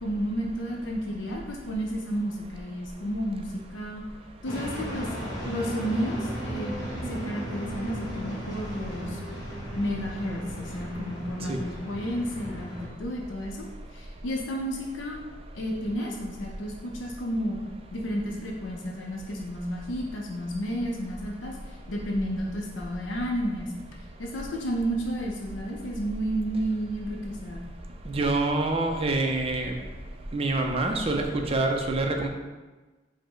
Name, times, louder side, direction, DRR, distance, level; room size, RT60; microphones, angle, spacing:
voice 1, 0.0-4.0 4.4-5.1 5.4-9.2 9.8-13.7 13.9-15.2 15.5-17.6 17.9-23.8 24.2-27.6, equal, 80° left, -1 dB, 0.5 m, -32 dB
sound 1, 4.4-12.9, equal, 20° left, 1.0 m, -36 dB
voice 2, 28.1-29.7 30.3-32.3, right 2 dB, 30° right, 3 dB, 0.4 m, -26 dB
4.9 x 2.0 x 3.7 m, 1.2 s
head